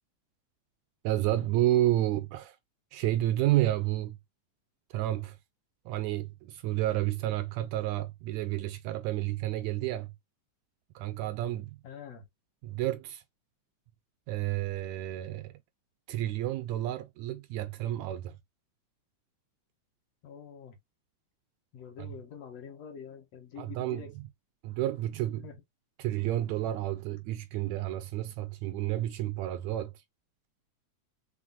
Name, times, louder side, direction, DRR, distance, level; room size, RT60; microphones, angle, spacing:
voice 1, 1.0-2.6 2.9-4.2 4.9-5.4 5.8-10.1 10.9-11.7 12.6-13.2 14.3-15.5 16.1-18.4 23.6-24.0 24.6-25.5 26.0-29.9, right 14 dB, 80° right, 1.7 m, -30 dB
voice 2, 11.8-12.3 20.2-20.8 21.7-24.1 25.4-25.6, left 7 dB, 65° left, 2.0 m, -46 dB
5.7 x 3.2 x 2.4 m
omnidirectional pair, 3.5 m